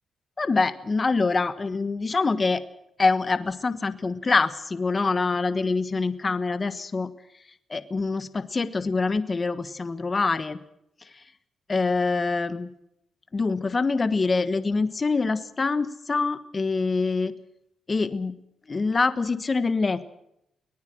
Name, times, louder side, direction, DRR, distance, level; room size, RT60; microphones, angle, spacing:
voice 1, 0.4-2.6 3.0-7.1 7.7-10.6 11.7-12.7 13.3-17.3 17.9-18.3 18.7-20.1, left 4 dB, 35° left, 13 dB, 1.3 m, -25 dB
23.5 x 19.0 x 6.2 m, 0.78 s
cardioid pair, 75°, 0 cm